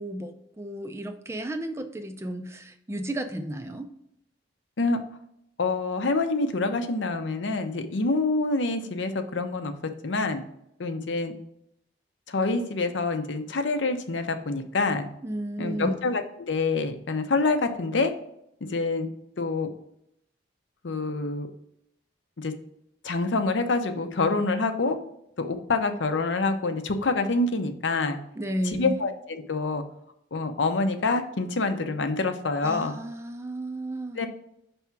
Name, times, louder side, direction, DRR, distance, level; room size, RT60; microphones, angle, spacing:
voice 1, 0.0-3.9 15.2-16.0 28.4-29.0 32.6-34.3, right 1 dB, 15° right, 8 dB, 0.4 m, -33 dB
voice 2, 5.6-9.7 10.0-10.4 10.8-11.3 12.3-15.1 15.6-18.1 18.7-19.1 19.4-19.7 20.8-21.5 22.4-22.5 23.0-25.0 25.4-28.2 28.7-29.8 30.3-32.9 34.2-34.3, left 3 dB, 75° left, 8 dB, 0.6 m, -26 dB
5.7 x 3.5 x 5.9 m, 0.76 s
head